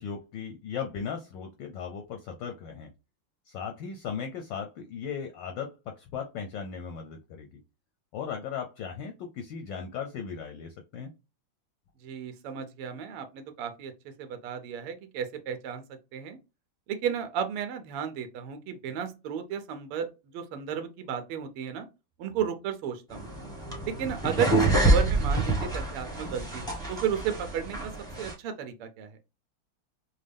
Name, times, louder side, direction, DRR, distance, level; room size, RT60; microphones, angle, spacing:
voice 1, 0.0-2.9 3.5-7.6 8.1-11.1, left 7 dB, 70° left, 1.1 m, -37 dB
voice 2, 12.0-16.4 16.9-21.9 22.2-23.3 23.8-27.9 28.2-29.1, right 8 dB, 80° right, 1.6 m, -33 dB
sound 1, 23.1-28.3, right 2 dB, 5° left, 0.6 m, -27 dB
6.3 x 2.2 x 3.4 m
omnidirectional pair, 2.4 m